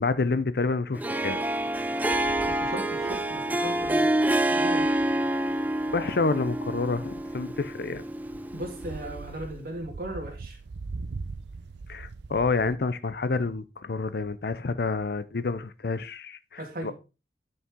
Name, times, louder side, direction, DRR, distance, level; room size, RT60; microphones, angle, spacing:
voice 1, 0.0-1.4 5.9-8.0 11.9-16.9, left 3 dB, 60° left, 0.6 m, -28 dB
Harp, 0.9-9.2, right 1 dB, 10° right, 0.4 m, -27 dB
sound 1, 2.1-12.8, right 3 dB, 80° right, 0.5 m, -42 dB
voice 2, 2.5-4.2 4.5-5.0 8.5-10.6 16.6-16.9, right 1 dB, 55° right, 2.2 m, -37 dB
9.8 x 5.4 x 3.6 m
head